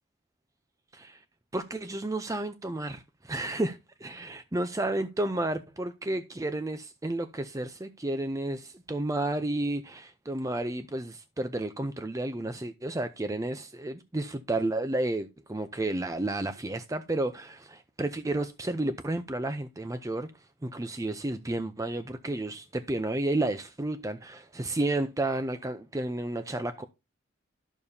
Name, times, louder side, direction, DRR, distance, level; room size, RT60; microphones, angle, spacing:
voice 1, 1.5-3.8 4.0-26.9, right 2 dB, 15° right, 0.5 m, -32 dB
12.5 x 6.8 x 2.7 m
head